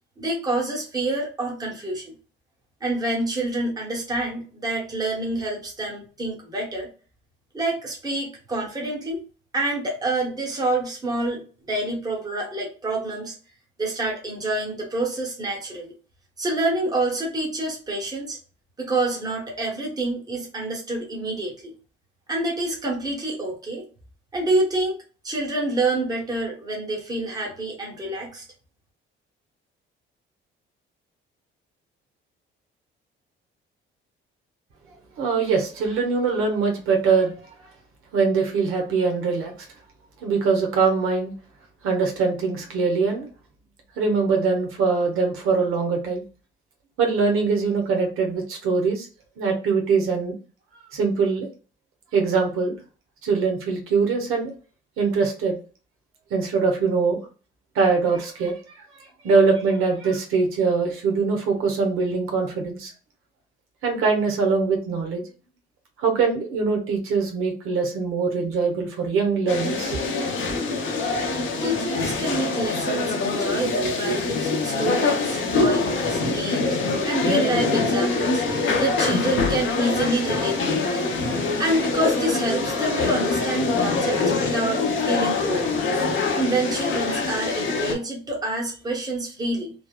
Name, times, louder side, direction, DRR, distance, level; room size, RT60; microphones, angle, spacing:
voice 1, 0.2-2.2 2.8-6.9 7.5-9.3 9.5-13.4 13.8-15.9 16.4-18.4 18.8-21.8 22.3-23.9 24.3-25.0 25.2-28.4 71.6-76.8 77.0-78.4 78.8-80.9 81.6-85.7 86.3-89.7, right 2 dB, 20° right, -1 dB, 0.9 m, -27 dB
voice 2, 35.2-37.3 38.1-39.5 40.2-41.3 41.8-43.3 44.0-46.2 47.0-49.1 49.4-50.3 50.9-51.5 52.1-52.8 53.2-54.5 55.0-55.6 56.3-57.2 57.7-62.9 63.8-65.2 66.0-70.0 70.4-70.5, right 4 dB, 80° right, 2 dB, 0.9 m, -22 dB
sound 1, 69.5-87.9, left 3 dB, 65° left, 0.8 m, -24 dB
3.3 x 2.0 x 2.2 m, 0.37 s
cardioid pair, 145°, 21 cm